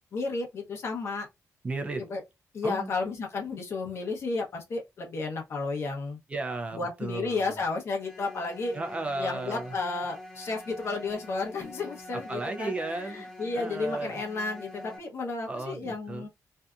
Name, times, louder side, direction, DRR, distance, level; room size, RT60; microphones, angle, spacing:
voice 1, 0.1-1.3 2.0-2.2 2.5-6.2 6.7-8.8 9.2-16.3, left 3 dB, 50° left, 0.8 m, -32 dB
voice 2, 1.6-2.0 2.6-2.9 6.3-7.4 8.7-9.7 12.1-13.3 13.5-14.2 15.5-16.3, right 2 dB, 20° right, 0.3 m, -34 dB
sound 1, 8.0-15.0, left 1 dB, 10° left, 0.7 m, -45 dB
2.6 x 2.4 x 2.3 m
wide cardioid pair, 175°, 6 cm